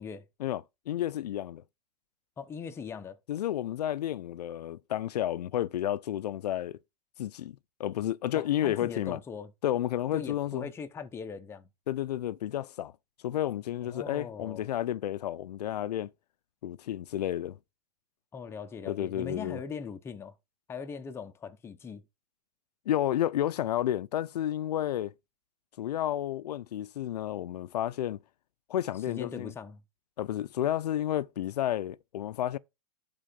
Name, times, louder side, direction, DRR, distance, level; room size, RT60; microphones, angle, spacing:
voice 1, 0.4-1.6 3.3-6.8 7.2-9.2 9.6-10.7 11.9-12.9 13.2-16.1 16.6-17.6 18.9-19.6 22.9-25.1 25.8-28.2 28.7-29.5 30.2-32.6, left 12 dB, 80° left, 0.6 m, -31 dB
voice 2, 2.4-3.2 8.3-9.5 10.1-11.7 13.8-14.6 18.3-20.3 20.7-22.0 29.1-29.8, left 6 dB, 10° left, 0.8 m, -40 dB
11.5 x 3.8 x 5.1 m
hypercardioid pair, 150°, 20 cm